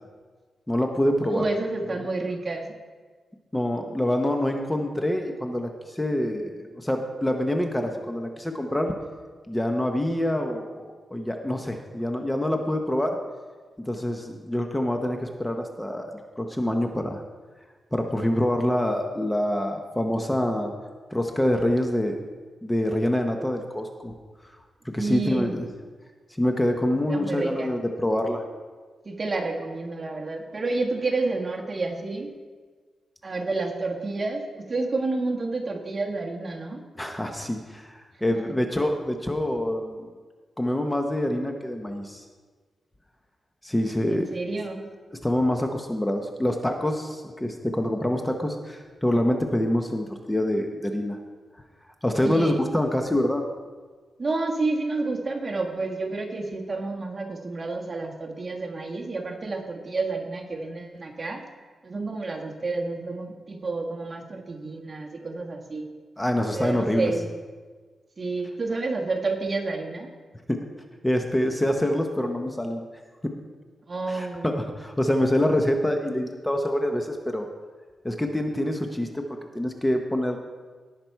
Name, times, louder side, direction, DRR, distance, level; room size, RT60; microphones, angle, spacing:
voice 1, 0.7-1.4 3.5-8.9 9.5-13.2 13.8-16.1 16.4-17.2 17.9-20.7 21.1-22.2 22.6-24.1 24.8-25.7 26.4-28.4 37.0-40.1 40.6-42.2 43.6-44.4 45.1-51.2 52.0-53.4 66.2-67.1 70.5-70.6 71.0-72.8 73.2-73.4 74.1-77.5 78.0-79.3 79.5-80.4, left 1 dB, 10° left, 4 dB, 0.9 m, -26 dB
voice 2, 1.2-2.7 25.0-25.5 27.1-27.7 29.0-32.3 33.2-36.8 44.1-44.8 52.2-52.6 54.2-61.4 61.8-65.8 66.5-67.3 68.2-70.1 73.9-74.6, right 3 dB, 35° right, 1 dB, 1.5 m, -29 dB
17.5 x 5.9 x 4.6 m, 1.5 s
cardioid pair, 100°, 0 cm